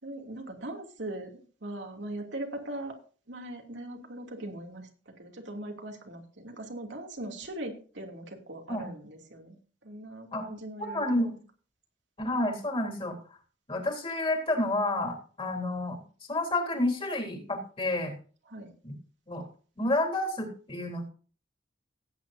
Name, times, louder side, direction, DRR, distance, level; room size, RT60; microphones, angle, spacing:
voice 1, 0.0-2.9 3.3-4.9 5.2-11.0 18.5-18.7, right 1 dB, 90° right, 1 dB, 2.8 m, -40 dB
voice 2, 10.9-11.4 12.2-13.2 13.7-16.0 16.3-18.2 18.8-18.9 19.3-19.5 19.8-21.1, left 1 dB, 30° left, 2 dB, 3.5 m, -30 dB
17.0 x 9.1 x 2.7 m, 0.39 s
head